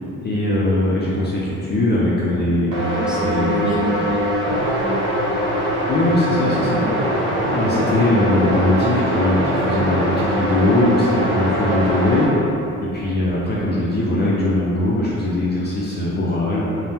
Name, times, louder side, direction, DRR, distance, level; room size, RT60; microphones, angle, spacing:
voice 1, 0.2-2.7 3.1-3.7 5.9-6.8 7.5-12.5 12.8-16.6, left 1 dB, 35° left, -6 dB, 0.4 m, -20 dB
sound 1, 2.7-12.3, equal, 70° right, 1.0 m, -22 dB
voice 2, 2.9-4.3 4.8-5.1 6.3-6.6, right 2 dB, ahead, -8 dB, 0.6 m, -27 dB
sound 2, 2.9-13.6, equal, 55° right, 0.6 m, -37 dB
3.3 x 2.0 x 2.7 m, 3.0 s
cardioid pair, 80°, 31 cm